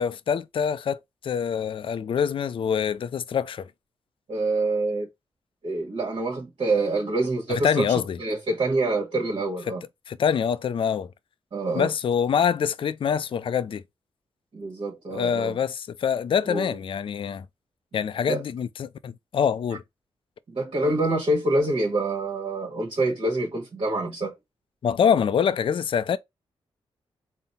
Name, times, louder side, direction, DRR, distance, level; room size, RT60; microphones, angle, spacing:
voice 1, 0.0-3.7 7.5-8.2 10.1-11.1 11.7-13.8 15.1-17.5 17.9-19.8 24.8-26.2, left 7 dB, 50° left, 0.3 m, -25 dB
voice 2, 4.3-5.1 5.6-9.8 11.5-11.9 14.5-15.6 16.5-16.7 18.3-18.4 20.5-24.4, right 2 dB, 55° right, 1.2 m, -26 dB
3.8 x 2.0 x 4.0 m
cardioid pair, 65°, 11 cm